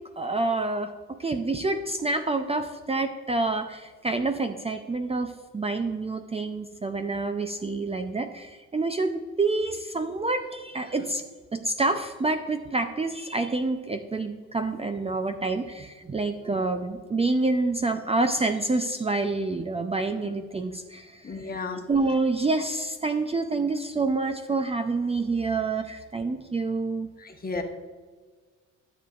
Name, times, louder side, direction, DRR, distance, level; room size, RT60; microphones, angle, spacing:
voice 1, 0.2-11.2 11.5-21.5 21.9-27.1, right 3 dB, 20° right, 7 dB, 0.5 m, -27 dB
voice 2, 21.2-21.8 27.2-27.6, left 3 dB, 30° left, 4 dB, 1.1 m, -33 dB
13.0 x 6.9 x 2.5 m, 1.5 s
cardioid pair, 90°, 30 cm